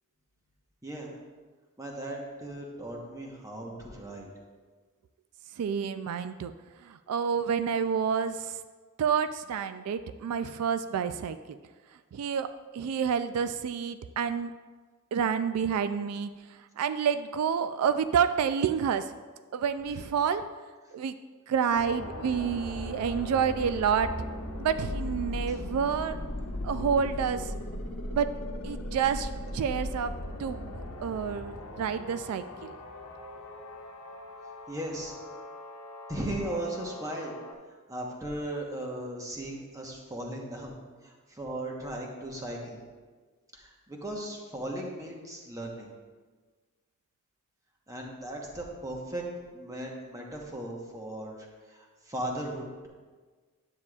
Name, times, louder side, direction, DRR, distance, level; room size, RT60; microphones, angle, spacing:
voice 1, 0.8-1.1 1.8-4.3 25.5-25.6 34.7-35.1 36.1-37.3 37.9-40.8 41.0-42.8 43.5-45.9 47.9-49.3 49.5-52.9, right 1 dB, 15° right, -1 dB, 1.0 m, -37 dB
voice 2, 5.6-6.5 6.8-8.6 9.0-11.6 12.1-14.5 15.1-16.3 16.8-19.1 19.5-20.4 20.9-21.1 21.5-24.1 24.6-26.2 26.6-27.6 28.1-28.3 28.6-30.1 30.4-30.7 31.0-32.7, right 7 dB, 80° right, 12 dB, 0.3 m, -29 dB
ufo sighting, 21.7-37.5, left 1 dB, 85° left, 0.9 m, -38 dB
9.6 x 8.1 x 2.4 m, 1.4 s
head